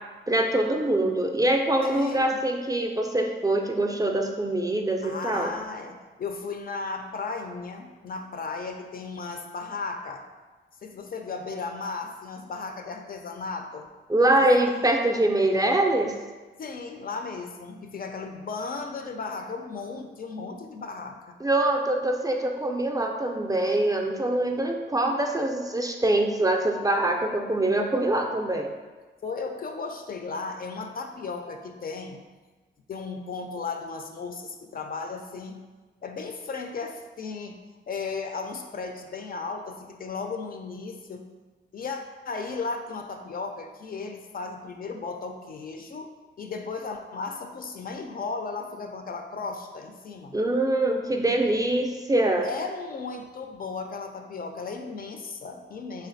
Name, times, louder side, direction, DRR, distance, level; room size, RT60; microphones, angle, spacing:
voice 1, 0.3-5.5 14.1-16.1 21.4-28.7 50.3-52.5, right 1 dB, 20° right, 2 dB, 0.4 m, -24 dB
voice 2, 1.8-2.4 5.0-10.2 10.8-13.9 14.4-14.7 16.6-21.4 29.2-32.2 32.9-35.6 36.0-37.6 37.9-41.3 41.7-42.0 42.3-50.4 52.4-56.1, left 4 dB, 50° left, 4 dB, 0.4 m, -35 dB
3.2 x 2.6 x 3.9 m, 1.3 s
cardioid pair, 90°, 20 cm